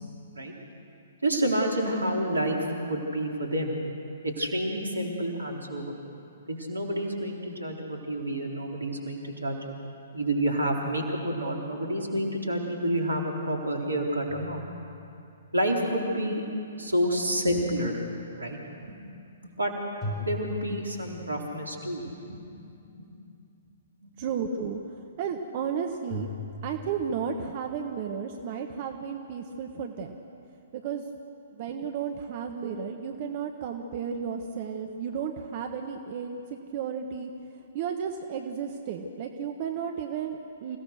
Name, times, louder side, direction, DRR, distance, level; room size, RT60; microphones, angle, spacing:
voice 1, 1.2-3.8 4.2-6.0 6.5-9.6 10.1-14.6 15.5-16.4 16.8-18.0 18.4-19.0 19.6-19.8 20.2-22.4 24.0-24.1, right 1 dB, 80° right, 0 dB, 3.8 m, -29 dB
sound 1, 14.3-15.5 20.0-21.6 26.1-27.2, left 2 dB, 15° left, 6.8 m, -38 dB
voice 2, 24.2-26.3 26.6-30.1 30.7-31.0 31.5-37.3 37.7-40.8, right 7 dB, 40° right, 4 dB, 1.4 m, -33 dB
28.0 x 17.0 x 6.6 m, 2.7 s
figure-of-eight pair, 120°, 0 cm